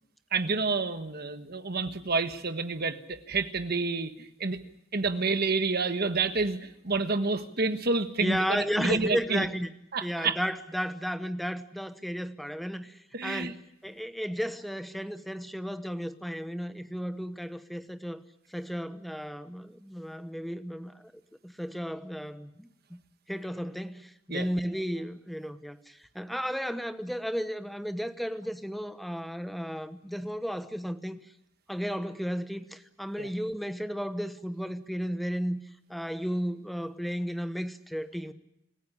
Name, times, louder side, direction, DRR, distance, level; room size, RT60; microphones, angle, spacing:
voice 1, 0.3-4.6 4.9-6.6 6.8-9.4 9.9-10.4 13.1-13.5 24.3-24.5 33.2-33.3, right 3 dB, 50° right, 1.4 m, -29 dB
voice 2, 8.2-9.7 10.0-18.2 18.5-21.0 21.4-23.0 23.3-31.2 31.7-35.6 35.9-38.3, equal, ahead, 1.0 m, -34 dB
27.0 x 15.0 x 9.9 m
head